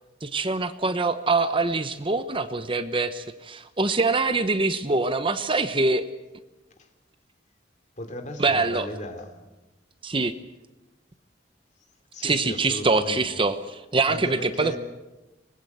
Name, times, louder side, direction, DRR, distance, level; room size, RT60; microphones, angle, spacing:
voice 1, 0.2-6.1 8.4-8.9 10.0-10.3 12.2-14.8, right 3 dB, 30° right, 1.0 m, -24 dB
voice 2, 8.0-9.3 12.1-13.3 14.1-14.8, left 1 dB, 40° left, 3.1 m, -35 dB
25.0 x 20.0 x 8.1 m
head